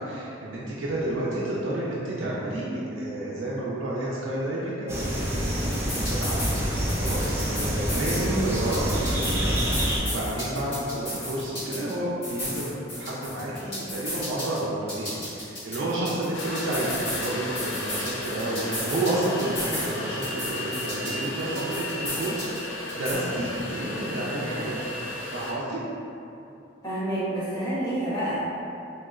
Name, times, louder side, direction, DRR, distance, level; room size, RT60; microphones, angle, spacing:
voice 1, 0.0-8.2 8.4-12.7 13.0-24.9 25.3-25.8, right 1 dB, 85° right, -7 dB, 0.5 m, -30 dB
sound 1, 4.9-10.0, equal, 15° right, 0.4 m, -27 dB
sound 2, 5.5-6.6 6.9-8.3 8.5-11.9 12.2-14.6 14.9-17.3 17.5-19.9 20.2-22.6 22.9-23.1, left 1 dB, 60° left, 1.4 m, -34 dB
sound 3, 16.3-25.5, left 1 dB, 85° left, 0.5 m, -34 dB
voice 2, 26.8-28.6, right 1 dB, 20° left, -12 dB, 1.1 m, -28 dB
3.0 x 2.9 x 2.4 m, 2.7 s
head